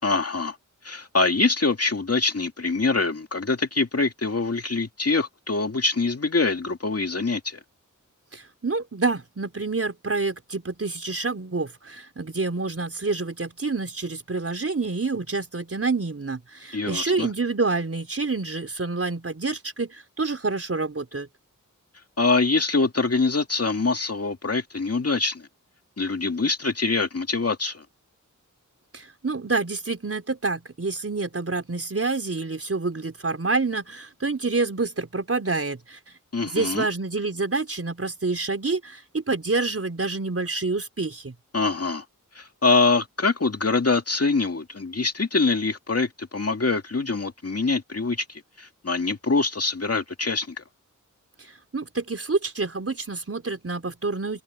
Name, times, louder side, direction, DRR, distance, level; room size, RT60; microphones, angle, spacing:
voice 1, 0.0-0.6 0.8-7.6 16.7-17.3 22.2-25.5 26.0-27.8 36.3-36.9 41.5-42.0 42.4-50.6, left 3 dB, 45° left, 2.3 m, -24 dB
voice 2, 8.3-21.3 28.9-36.0 36.4-41.3 51.7-54.4, right 3 dB, 45° right, 4.4 m, -27 dB
open air
wide cardioid pair, 95°, 32 cm